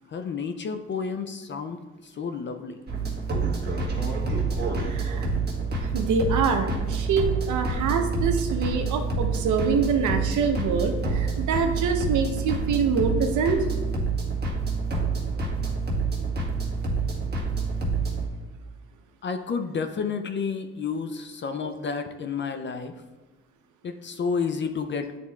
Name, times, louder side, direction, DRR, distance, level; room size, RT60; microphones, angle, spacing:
voice 1, 0.1-2.8 19.2-23.0 23.8-25.2, left 5 dB, 40° left, 8 dB, 0.5 m, -31 dB
sound 1, 2.9-18.3, right 4 dB, 35° right, 1.4 m, -27 dB
voice 2, 4.9-5.3 5.8-13.6, right 5 dB, 75° right, 5 dB, 0.8 m, -25 dB
9.6 x 4.2 x 2.3 m, 1.3 s
cardioid pair, 90°, 30 cm